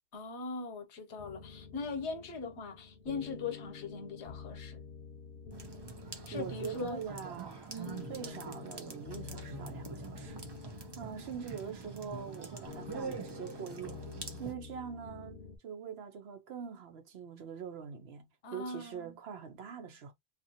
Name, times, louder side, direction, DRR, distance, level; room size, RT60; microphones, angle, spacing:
voice 1, 0.1-4.8 6.3-7.0 7.7-8.0 18.4-19.2, left 4 dB, 85° left, 1.0 m, -40 dB
sound 1, 1.2-15.6, left 6 dB, 60° left, 0.8 m, -49 dB
sound 2, 5.5-14.5, right 5 dB, 35° right, 0.4 m, -45 dB
voice 2, 6.3-7.7 8.1-10.4 10.7-14.0 14.4-15.4 15.6-20.1, right 7 dB, 70° right, 1.0 m, -43 dB
2.6 x 2.5 x 2.7 m
omnidirectional pair, 1.1 m